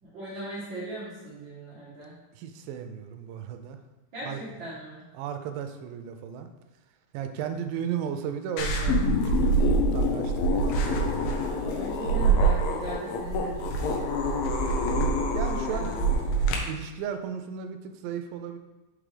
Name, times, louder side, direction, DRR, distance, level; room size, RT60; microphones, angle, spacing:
voice 1, 0.0-2.2 4.1-5.1 7.4-7.6 11.8-14.4 15.6-16.7, right 1 dB, 65° right, -8 dB, 1.1 m, -39 dB
voice 2, 2.3-3.8 4.2-4.4 5.1-6.5 7.1-11.4 15.3-15.9 16.7-18.6, right 8 dB, 85° right, 7 dB, 2.2 m, -35 dB
sound 1, 8.6-16.6, right 1 dB, 85° left, 2.6 m, -25 dB
5.9 x 4.9 x 3.3 m, 1.1 s
omnidirectional pair, 4.1 m